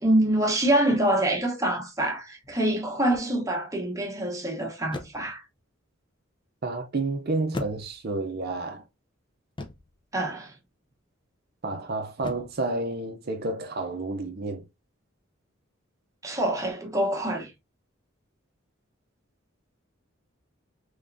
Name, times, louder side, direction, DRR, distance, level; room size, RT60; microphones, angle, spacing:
voice 1, 0.0-5.4 10.1-10.5 16.2-17.5, right 1 dB, 15° right, 1.0 m, -25 dB
sound 1, 2.4-2.8 4.9-5.4 7.5-8.3 9.6-10.0 12.2-12.7, left 2 dB, 25° left, 0.5 m, -38 dB
voice 2, 6.6-8.8 11.6-14.6, right 2 dB, 50° right, 0.6 m, -30 dB
3.5 x 3.1 x 2.6 m
head